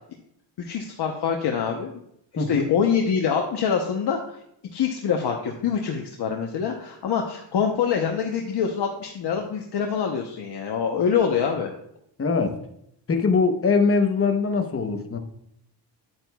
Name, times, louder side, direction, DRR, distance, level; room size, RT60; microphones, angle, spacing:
voice 1, 0.6-2.0 2.5-4.4 4.7-11.7, left 7 dB, 60° left, 0.9 m, -25 dB
voice 2, 2.4-2.7 12.2-12.6 13.1-15.2, left 4 dB, 30° left, 0.9 m, -22 dB
9.8 x 8.7 x 2.3 m
wide cardioid pair, 150°, 45 cm